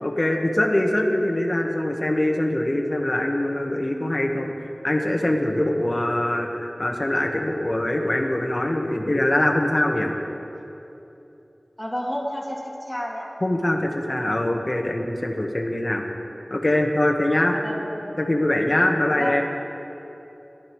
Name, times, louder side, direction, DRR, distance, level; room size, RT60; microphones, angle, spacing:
voice 1, 0.0-4.5 4.8-10.2 13.4-16.0 16.5-17.6 18.2-19.4, left 1 dB, 40° left, 2 dB, 1.3 m, -23 dB
voice 2, 11.8-13.3 17.5-18.2 19.0-19.4, equal, 5° left, -4 dB, 2.6 m, -31 dB
18.0 x 12.0 x 3.2 m, 2.9 s
wide cardioid pair, 60°, 0 cm